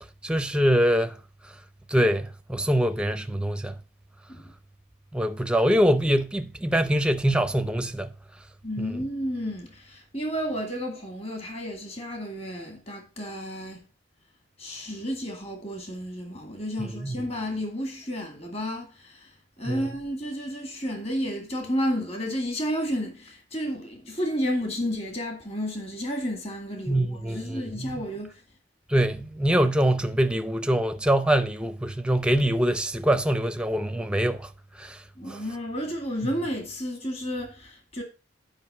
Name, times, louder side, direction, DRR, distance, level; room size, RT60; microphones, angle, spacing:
voice 1, 0.2-1.1 1.9-3.8 5.1-8.1 8.8-8.9 16.8-17.2 19.7-19.9 26.9-28.0 28.9-34.5 34.8-35.0 35.3-35.4, right 1 dB, 5° right, 0.6 m, -24 dB
voice 2, 8.6-13.9 14.6-28.4 35.2-38.0, equal, 30° left, 2.1 m, -32 dB
9.6 x 5.4 x 5.4 m
head